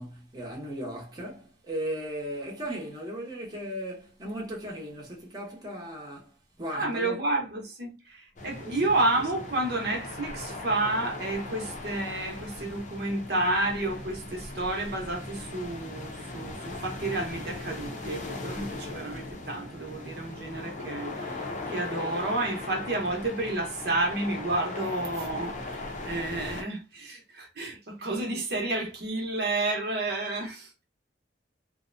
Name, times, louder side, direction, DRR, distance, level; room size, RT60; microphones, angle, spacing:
voice 1, 0.0-6.3 6.6-7.2 8.6-8.9, equal, 25° right, 0.8 m, -37 dB
voice 2, 6.7-30.8, right 2 dB, 65° right, 0.8 m, -30 dB
sound 1, 8.4-26.6, left 2 dB, 45° left, 0.6 m, -38 dB
2.7 x 2.1 x 2.5 m
head